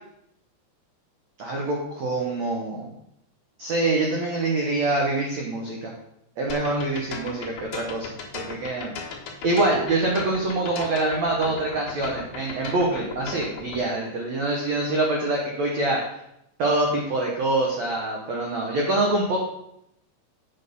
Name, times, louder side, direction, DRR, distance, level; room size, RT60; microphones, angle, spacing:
voice 1, 1.4-2.9 3.6-5.9 6.4-8.1 8.3-8.9 9.4-16.0 16.6-19.4, right 2 dB, 85° right, -1 dB, 1.5 m, -25 dB
sound 1, 6.5-13.8, left 5 dB, 60° left, 2.2 m, -37 dB
7.3 x 6.5 x 5.4 m, 0.79 s
omnidirectional pair, 5.1 m